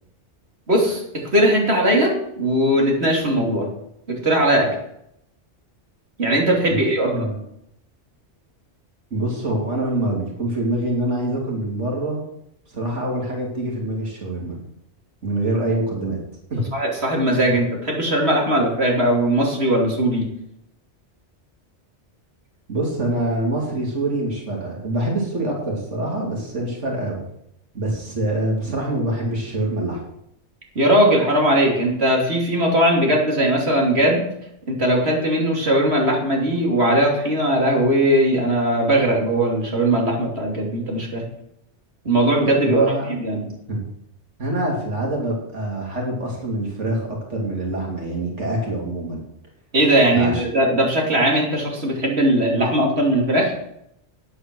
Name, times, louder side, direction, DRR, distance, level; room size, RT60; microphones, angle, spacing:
voice 1, 0.7-1.0 1.3-3.7 4.1-4.7 6.2-7.3 16.7-20.3 30.7-34.2 34.7-41.2 42.0-43.4 49.7-53.5, right 1 dB, 60° right, -1 dB, 3.2 m, -19 dB
voice 2, 6.7-7.4 9.1-12.2 12.7-14.6 15.2-16.2 16.5-16.7 22.7-27.2 27.7-30.0 42.6-43.1 43.7-43.9 44.4-49.2 50.1-50.4, right 1 dB, 85° right, -1 dB, 3.1 m, -25 dB
10.0 x 8.4 x 6.2 m, 0.77 s
omnidirectional pair, 1.2 m